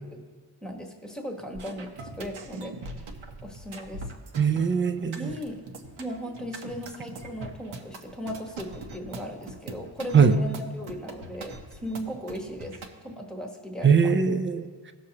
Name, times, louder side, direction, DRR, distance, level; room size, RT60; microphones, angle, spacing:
voice 1, 0.6-1.9 2.2-2.7 3.4-4.1 5.2-5.6 6.0-11.5 11.8-12.8 13.0-14.1, equal, ahead, 2 dB, 1.1 m, -37 dB
sound 1, 1.5-12.9, right 2 dB, 70° right, 1.0 m, -42 dB
voice 2, 4.3-5.3 10.1-10.3 13.8-14.7, right 6 dB, 25° right, 9 dB, 0.4 m, -21 dB
17.0 x 6.3 x 2.9 m, 1.5 s
wide cardioid pair, 125°, 49 cm